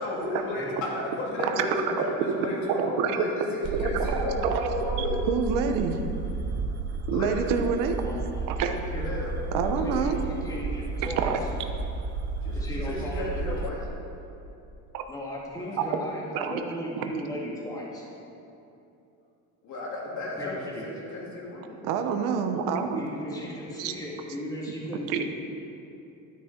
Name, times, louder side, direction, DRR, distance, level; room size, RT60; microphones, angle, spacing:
voice 1, 0.0-5.2 7.1-7.5 9.0-9.3 12.4-13.8 19.6-21.8, left 1 dB, 65° left, -4 dB, 3.1 m, -33 dB
voice 2, 1.6-2.5 2.8-4.7 5.3-6.1 7.1-8.0 8.5-8.8 9.5-10.2 11.0-11.4 14.9-15.0 15.8-15.9 16.3-16.6 17.0-17.1 21.8-23.0 23.8-23.9 25.1-25.2, right 6 dB, 90° right, 6 dB, 1.0 m, -27 dB
sound 1, 3.6-13.7, right 3 dB, 35° right, 0.7 m, -32 dB
voice 3, 8.0-9.1 9.6-11.3 12.5-13.7 15.1-18.1 20.4-20.9 23.0-25.3, equal, 10° left, -3 dB, 1.9 m, -36 dB
12.0 x 9.6 x 4.4 m, 2.8 s
cardioid pair, 150°, 32 cm